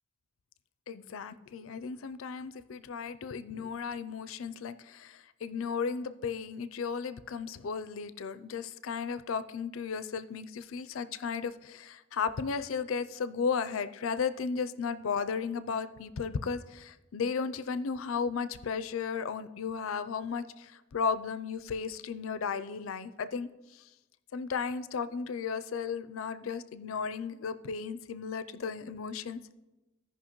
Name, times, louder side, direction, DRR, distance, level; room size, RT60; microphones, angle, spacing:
voice 1, 0.9-23.8 24.3-29.4, left 5 dB, 80° left, 13 dB, 0.4 m, -35 dB
16.5 x 5.5 x 3.0 m, 1.1 s
head